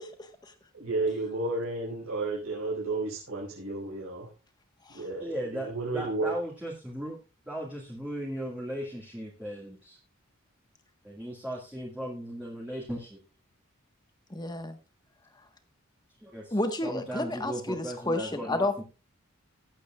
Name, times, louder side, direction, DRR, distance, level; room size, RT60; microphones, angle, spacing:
voice 1, 0.2-0.5 4.8-5.0 14.3-14.8 16.5-18.8, left 2 dB, 20° left, 7 dB, 1.3 m, -31 dB
voice 2, 0.7-4.3 4.9-6.3, right 2 dB, 85° right, -5 dB, 5.2 m, -32 dB
voice 3, 5.2-5.7 5.9-7.2 7.5-10.0 11.0-13.2 16.2-16.5 16.8-18.7, equal, 5° right, -4 dB, 2.0 m, -37 dB
19.5 x 8.4 x 2.4 m, 0.31 s
head